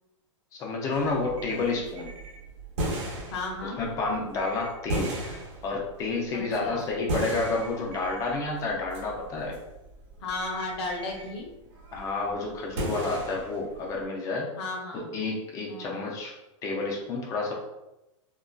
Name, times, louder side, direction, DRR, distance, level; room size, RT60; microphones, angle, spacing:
voice 1, 0.5-2.1 3.6-9.6 11.9-14.5 14.9-16.3 16.6-17.5, left 3 dB, 20° left, -1 dB, 0.4 m, -30 dB
sound 1, 0.9-14.0, right 1 dB, 65° right, 0.9 m, -36 dB
sound 2, 1.4-2.4 4.4-5.4 7.3-8.3 10.3-11.3, right 4 dB, 35° right, 0.5 m, -48 dB
voice 2, 3.3-3.8 6.3-6.8 10.2-11.5 14.6-15.1 15.7-16.0, left 2 dB, 55° left, 0 dB, 0.7 m, -34 dB
2.5 x 2.2 x 2.2 m, 0.95 s
supercardioid pair, 155°, 16 cm